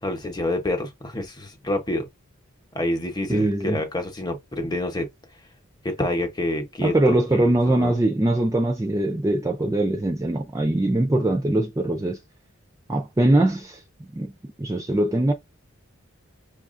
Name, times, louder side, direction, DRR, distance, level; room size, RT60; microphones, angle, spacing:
voice 1, 0.0-2.0 2.7-5.1 5.8-7.9, left 1 dB, 20° left, 0.8 m, -28 dB
voice 2, 3.3-3.8 6.8-12.2 12.9-13.8 14.2-14.3 14.6-15.3, right 1 dB, 15° right, 0.3 m, -22 dB
5.9 x 2.3 x 2.5 m
head